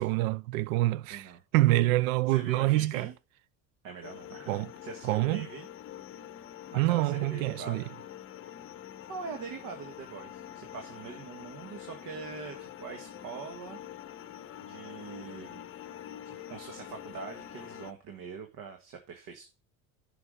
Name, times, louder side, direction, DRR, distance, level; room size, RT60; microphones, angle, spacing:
voice 1, 0.0-3.1 4.5-4.7 5.0-5.5 6.8-7.8, right 17 dB, 80° right, 0.5 m, -26 dB
voice 2, 1.1-1.4 2.3-3.1 3.8-5.7 6.7-7.9 8.8-14.2 14.6-15.6 16.3-19.4, right 5 dB, 50° right, 1.8 m, -43 dB
sound 1, 4.0-17.9, left 11 dB, 30° left, 0.9 m, -45 dB
9.8 x 5.9 x 5.0 m
supercardioid pair, 110°, 40 cm